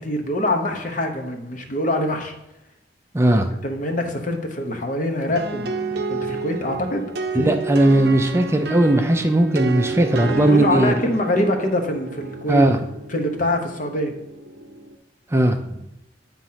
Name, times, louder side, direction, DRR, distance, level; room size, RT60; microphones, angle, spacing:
voice 1, 0.0-2.3 3.6-7.1 7.3-7.5 10.4-12.7 13.1-14.1, left 1 dB, 45° left, 4 dB, 0.9 m, -24 dB
voice 2, 3.1-3.5 7.3-11.0 12.5-12.8 15.3-15.6, right 1 dB, 15° right, 5 dB, 0.4 m, -17 dB
sound 1, 5.4-15.0, right 4 dB, 60° right, 0.6 m, -30 dB
8.8 x 3.0 x 5.6 m, 0.89 s
head